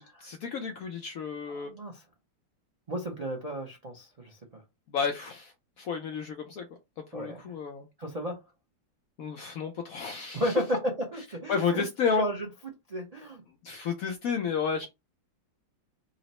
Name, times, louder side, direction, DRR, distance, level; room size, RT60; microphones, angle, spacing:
voice 1, 0.2-1.7 4.9-6.7 7.1-7.9 9.2-10.5 11.5-12.3 13.6-14.9, left 6 dB, 75° left, 0.8 m, -31 dB
voice 2, 1.5-2.0 2.9-4.6 7.1-7.6 8.0-8.4 10.3-12.5 12.9-13.4 14.1-14.2, equal, 90° right, 0.3 m, -33 dB
3.9 x 2.0 x 4.1 m
omnidirectional pair, 2.0 m